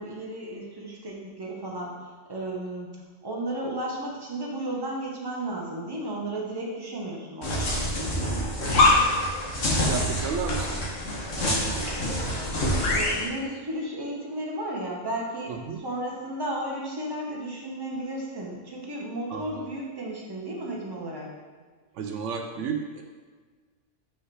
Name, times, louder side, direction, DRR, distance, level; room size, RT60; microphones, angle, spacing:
voice 1, 0.0-2.9 3.2-8.3 12.9-21.3, right 1 dB, 20° right, -3 dB, 1.1 m, -34 dB
guinea pig, 7.4-13.2, left 1 dB, 80° left, 1.7 m, -25 dB
voice 2, 9.8-10.8 11.4-12.0 15.5-15.8 19.3-19.7 21.9-23.0, right 6 dB, 80° right, 3 dB, 1.0 m, -33 dB
5.5 x 4.6 x 4.8 m, 1.5 s
omnidirectional pair, 1.3 m